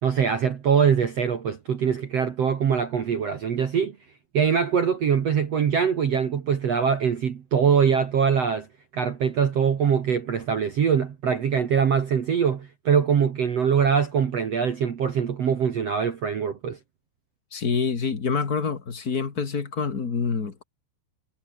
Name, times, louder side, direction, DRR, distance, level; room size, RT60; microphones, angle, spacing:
voice 1, 0.0-3.9 4.3-8.7 8.9-16.8, right 7 dB, 65° right, 1.6 m, -23 dB
voice 2, 17.5-20.6, left 5 dB, 70° left, 0.9 m, -26 dB
omnidirectional pair, 5.6 m